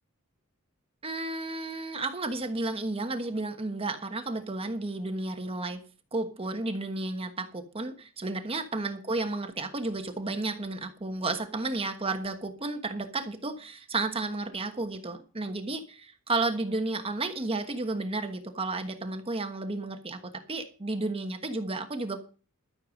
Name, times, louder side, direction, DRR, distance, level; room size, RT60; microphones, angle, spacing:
voice 1, 1.0-5.8 6.1-22.2, right 2 dB, 25° right, 7 dB, 1.2 m, -32 dB
12.5 x 6.8 x 6.4 m, 0.37 s
head